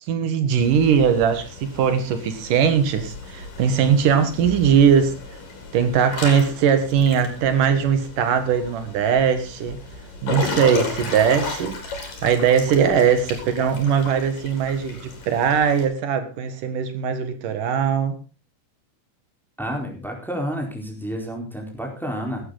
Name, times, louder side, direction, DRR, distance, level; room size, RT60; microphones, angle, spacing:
voice 1, 0.1-5.2 5.7-9.8 10.2-18.2, right 7 dB, 80° right, 3.2 m, -20 dB
Water / Splash splatter / Drip, 0.6-15.9, left 3 dB, 85° left, 5.6 m, -35 dB
voice 2, 19.6-22.5, equal, ahead, 3.9 m, -30 dB
16.5 x 12.0 x 4.0 m
omnidirectional pair, 3.7 m